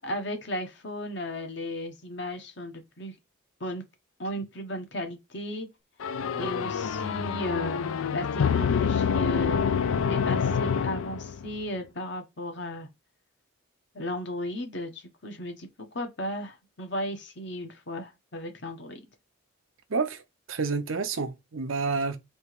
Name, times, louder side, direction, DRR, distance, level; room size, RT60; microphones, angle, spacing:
voice 1, 0.0-3.1 3.6-3.8 4.2-5.7 6.4-7.8 8.1-9.6 10.1-12.9 13.9-15.7 15.9-19.0, left 1 dB, 60° left, 1.1 m, -35 dB
sound 1, 6.0-11.6, left 6 dB, 85° left, 0.4 m, -27 dB
voice 2, 19.9-20.2 20.5-22.2, right 4 dB, 80° right, 0.7 m, -29 dB
3.5 x 2.8 x 4.6 m
head